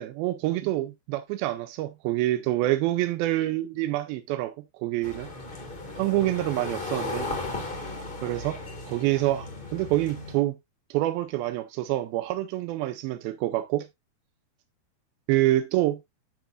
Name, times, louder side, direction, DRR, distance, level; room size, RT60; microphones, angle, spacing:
voice 1, 0.0-5.3 6.0-7.3 8.2-8.6 8.9-10.6 10.9-13.9 15.3-16.0, right 15 dB, 80° right, 2.2 m, -27 dB
sound 1, 5.0-10.3, left 2 dB, 65° left, 0.5 m, -36 dB
9.2 x 7.3 x 2.4 m
omnidirectional pair, 4.8 m